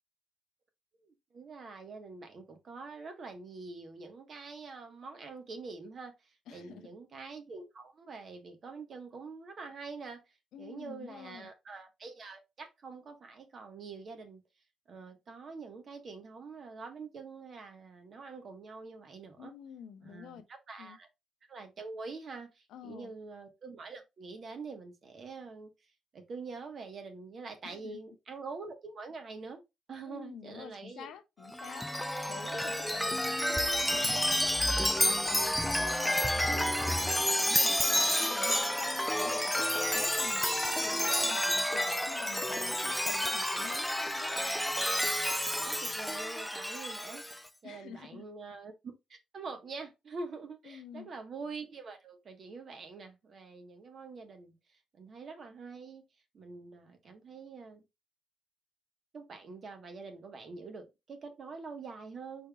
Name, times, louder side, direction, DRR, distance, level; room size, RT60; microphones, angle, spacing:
voice 1, 1.0-14.4 14.9-19.5 20.0-21.1 21.5-25.7 26.1-29.6 29.9-31.1 32.3-32.5 45.6-47.2 47.6-56.0 56.3-57.8 59.1-62.5, right 4 dB, 50° right, 1.4 m, -45 dB
voice 2, 6.5-6.9 10.5-11.5 19.4-20.4 20.8-21.0 22.7-23.1 27.6-28.0 30.1-31.9 32.3-39.6 39.9-44.5 47.6-48.2 50.6-51.1, left 9 dB, 80° left, 0.8 m, -48 dB
Chime, 31.5-47.4, left 1 dB, 5° left, 0.5 m, -30 dB
5.1 x 4.2 x 2.4 m
cardioid pair, 90°, 0 cm